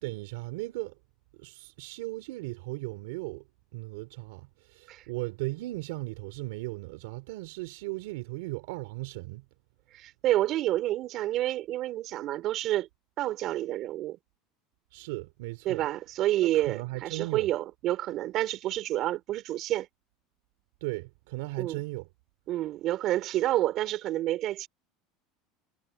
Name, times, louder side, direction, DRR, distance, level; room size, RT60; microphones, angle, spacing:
voice 1, 0.0-0.9 1.4-3.4 3.7-9.4 14.9-15.8 16.4-17.5 20.8-22.1, right 22 dB, 80° right, 2.7 m, -37 dB
voice 2, 9.9-12.9 13.2-14.2 15.6-19.9 21.6-21.8 22.5-24.7, right 14 dB, 50° right, 4.2 m, -29 dB
supercardioid pair, 120°, 0 cm